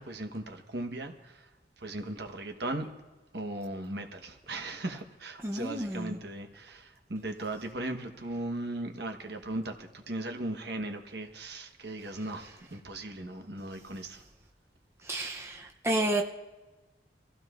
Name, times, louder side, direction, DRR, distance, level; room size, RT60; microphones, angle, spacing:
voice 1, 0.0-1.5 1.8-2.9 3.3-14.2, right 1 dB, 65° right, 5 dB, 1.2 m, -37 dB
voice 2, 5.4-6.2 15.0-16.2, right 1 dB, 15° right, 0 dB, 0.7 m, -31 dB
26.0 x 15.5 x 2.5 m, 1.2 s
head